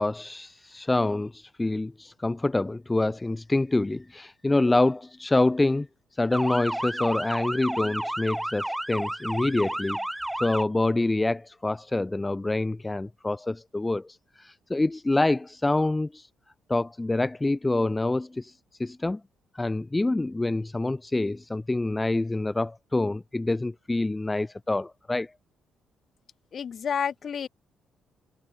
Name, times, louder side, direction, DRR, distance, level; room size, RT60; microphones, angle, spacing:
voice 1, 0.0-5.9 6.1-10.0 10.4-16.3 16.7-18.5 18.8-19.2 19.5-25.3, left 2 dB, 15° left, 0.4 m, -26 dB
Motor vehicle (road) / Siren, 6.3-10.6, right 1 dB, 5° right, 0.9 m, -31 dB
voice 2, 26.5-27.5, left 7 dB, 50° left, 2.2 m, -30 dB
cardioid pair, 90°, 0 cm